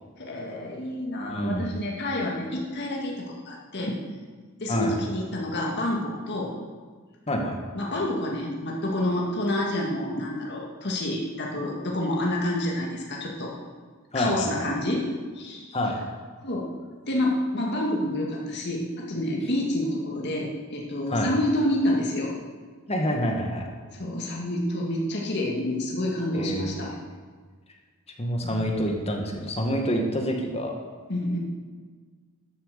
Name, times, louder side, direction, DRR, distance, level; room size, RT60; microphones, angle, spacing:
voice 1, 0.2-4.0 4.6-6.5 7.8-13.5 14.1-15.1 15.3-15.8 16.4-16.7 17.1-22.3 23.9-26.9 28.4-28.6 31.1-31.4, left 1 dB, 55° left, -2 dB, 2.1 m, -28 dB
voice 2, 1.3-1.7 4.7-4.9 7.3-7.6 14.1-14.6 15.7-16.0 21.1-21.3 22.9-23.6 26.3-26.9 28.2-30.8, equal, 30° left, 1 dB, 1.8 m, -27 dB
12.5 x 7.8 x 6.8 m, 1.5 s
head